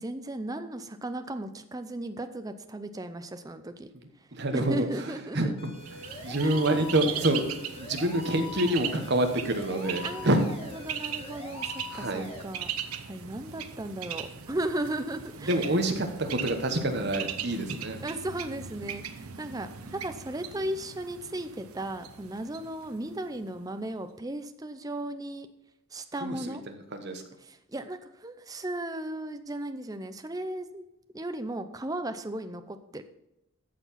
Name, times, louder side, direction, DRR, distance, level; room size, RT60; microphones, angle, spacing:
voice 1, 0.0-3.9 4.2-5.5 6.4-6.8 10.0-10.3 10.8-12.7 13.1-15.5 18.0-25.5 25.9-26.6 27.4-30.9 31.1-33.0, right 1 dB, 15° right, 9 dB, 0.5 m, -36 dB
voice 2, 4.3-7.5 7.8-10.5 11.9-12.3 15.4-18.0 26.2-27.2, right 1 dB, 50° right, 6 dB, 1.2 m, -27 dB
sound 1, 5.6-12.4, left 4 dB, 25° left, 1.7 m, -43 dB
Bird, 5.8-23.6, right 8 dB, 85° right, 0.9 m, -39 dB
13.5 x 4.7 x 5.7 m, 0.88 s
head